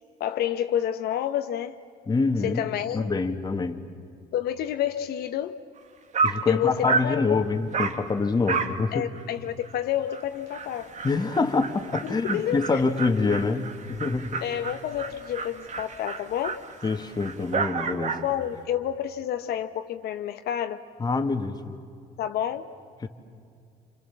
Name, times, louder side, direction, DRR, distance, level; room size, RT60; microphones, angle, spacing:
voice 1, 0.2-1.8 2.4-3.1 4.3-5.6 6.5-7.4 8.9-10.9 12.2-12.8 14.4-16.6 18.2-20.8 22.2-22.7, left 10 dB, 70° left, 0.9 m, -29 dB
voice 2, 2.1-2.6 2.9-3.8 6.2-9.1 11.0-14.4 16.8-18.2 21.0-21.8 23.0-23.1, left 4 dB, 25° left, 1.8 m, -26 dB
Dog, 5.8-5.9 6.1-6.5 6.9-7.2 7.7-8.0 8.5-8.8 9.1-9.2 9.7-9.8 10.1-10.2 10.5-18.3, right 5 dB, 45° right, 1.8 m, -31 dB
30.0 x 27.0 x 7.4 m
cardioid pair, 110°, 17 cm